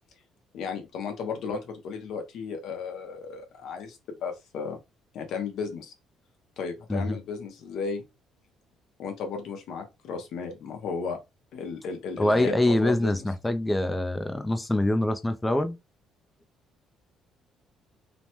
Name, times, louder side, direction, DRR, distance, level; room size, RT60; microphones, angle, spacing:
voice 1, 0.5-4.8 5.1-5.9 6.6-8.0 9.0-11.2 11.5-13.2, left 5 dB, 70° left, 0.8 m, -34 dB
voice 2, 12.2-15.8, left 1 dB, 10° left, 0.4 m, -25 dB
3.1 x 2.1 x 2.9 m
cardioid pair, 115°, 0 cm